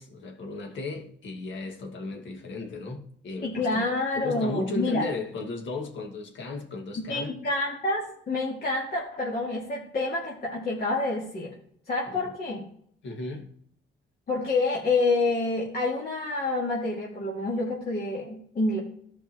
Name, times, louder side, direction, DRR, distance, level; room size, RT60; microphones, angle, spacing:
voice 1, 0.0-3.9 4.1-7.3 12.1-12.3 13.0-13.5, left 3 dB, 70° left, 1.9 m, -35 dB
voice 2, 3.4-5.1 6.9-11.6 11.9-12.6 14.3-18.8, left 2 dB, 50° left, 2.4 m, -28 dB
14.5 x 5.3 x 3.0 m
cardioid pair, 90°, 20 cm